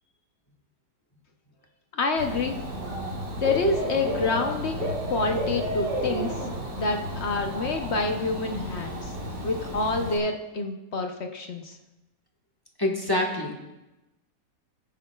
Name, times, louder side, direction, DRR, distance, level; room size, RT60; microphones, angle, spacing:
voice 1, 1.9-2.6 3.4-6.4 6.8-9.1 9.4-11.8, left 3 dB, 50° left, 4 dB, 0.9 m, -27 dB
Dog / Bird, 2.2-10.2, equal, 70° right, 3.0 m, -32 dB
voice 2, 12.8-13.6, left 1 dB, 15° left, 0 dB, 1.3 m, -26 dB
17.5 x 9.8 x 2.3 m, 1.0 s
omnidirectional pair, 2.0 m